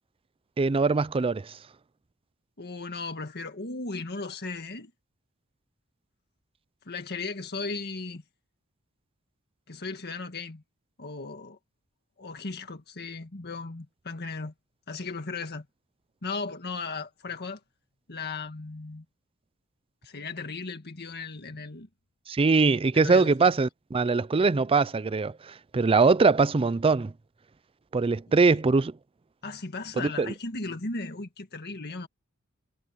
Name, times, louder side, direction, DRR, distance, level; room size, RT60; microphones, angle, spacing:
voice 1, 0.6-1.5 22.3-27.1 27.9-28.9 30.0-30.3, right 4 dB, 25° right, 0.4 m, -22 dB
voice 2, 2.6-4.9 6.8-8.2 9.7-10.6 11.0-11.6 12.2-14.5 14.9-15.6 16.2-17.6 18.1-19.0 20.0-21.9 22.9-23.5 28.4-28.6 29.4-32.1, left 3 dB, 50° left, 1.7 m, -36 dB
head